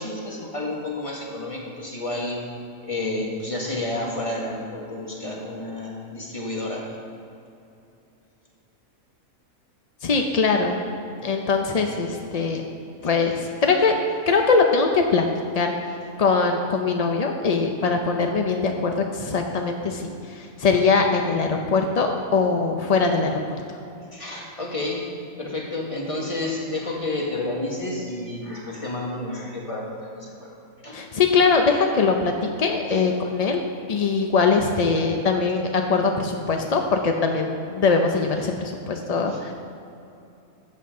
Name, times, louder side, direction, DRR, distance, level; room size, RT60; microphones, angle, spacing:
voice 1, 0.0-2.5 2.8-6.9 24.1-25.1 25.4-30.6 30.8-31.0 32.9-33.0 39.3-39.4, left 2 dB, 25° left, -2 dB, 1.6 m, -30 dB
voice 2, 10.0-10.8 11.2-12.6 13.0-13.9 14.3-15.3 15.5-23.4 30.9-32.3 32.6-33.6 33.9-39.5, left 4 dB, 55° left, 3 dB, 0.4 m, -22 dB
14.0 x 7.9 x 3.7 m, 2.7 s
omnidirectional pair, 1.5 m